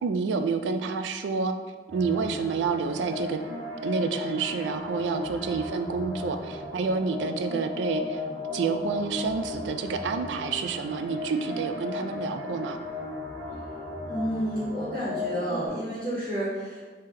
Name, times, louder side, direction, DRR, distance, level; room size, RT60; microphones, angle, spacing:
voice 1, 0.0-1.5 1.9-3.4 3.8-8.2 8.5-12.8, right 5 dB, 85° right, 8 dB, 0.3 m, -28 dB
sound 1, 1.9-15.7, left 3 dB, 70° right, 1.0 m, -36 dB
voice 2, 14.0-16.8, equal, 50° right, -11 dB, 1.4 m, -30 dB
3.6 x 2.8 x 3.3 m, 1.4 s
head